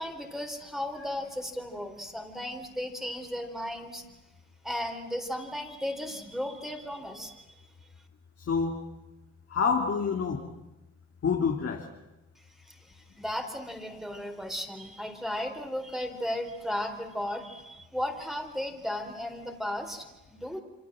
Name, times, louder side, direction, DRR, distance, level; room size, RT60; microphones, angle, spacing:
voice 1, 0.0-4.0 4.6-7.4 12.7-20.6, left 1 dB, ahead, 4 dB, 4.2 m, -35 dB
voice 2, 8.4-8.8 9.5-10.5 11.2-11.9, left 5 dB, 50° left, 1 dB, 2.7 m, -27 dB
28.5 x 25.5 x 7.7 m, 1.0 s
cardioid pair, 90°, 30 cm